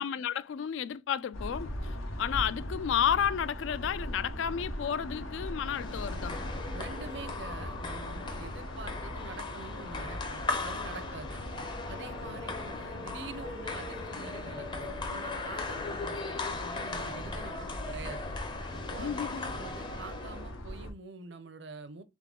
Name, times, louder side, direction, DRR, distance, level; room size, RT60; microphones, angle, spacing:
voice 1, 0.0-6.4 19.0-19.5, left 8 dB, 70° left, 0.3 m, -32 dB
sound 1, 1.3-20.9, left 1 dB, 85° left, 0.9 m, -40 dB
sound 2, 5.7-20.6, left 3 dB, 25° left, 0.6 m, -39 dB
voice 2, 6.7-11.4 11.9-18.3 18.9-22.0, right 4 dB, 60° right, 0.5 m, -46 dB
3.7 x 3.6 x 3.7 m
head